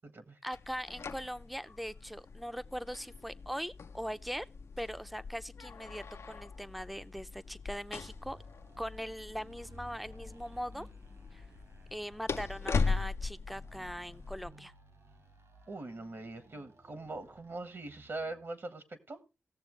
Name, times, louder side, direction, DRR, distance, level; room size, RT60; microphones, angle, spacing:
voice 1, 0.4-4.5 4.8-8.4 8.8-10.9 11.3-11.4 11.9-14.7, equal, ahead, 0.5 m, -41 dB
sound 1, 0.5-14.5, left 4 dB, 70° left, 0.5 m, -40 dB
sound 2, 7.7-18.5, right 2 dB, 80° right, 3.7 m, -59 dB
voice 2, 15.7-19.2, right 2 dB, 60° right, 1.4 m, -42 dB
18.0 x 7.0 x 3.1 m
cardioid pair, 60°, 5 cm